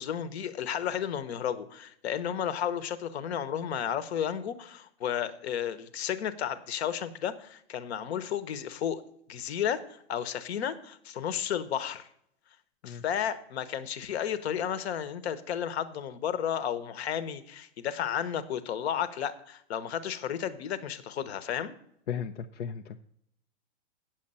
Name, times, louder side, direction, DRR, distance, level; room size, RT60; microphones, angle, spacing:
voice 1, 0.0-9.0 9.3-12.1 12.8-21.7, left 9 dB, 65° left, 13 dB, 1.1 m, -33 dB
voice 2, 22.1-23.0, left 7 dB, 85° left, 5 dB, 0.7 m, -35 dB
8.9 x 7.3 x 5.5 m, 0.72 s
hypercardioid pair, 125°, 34 cm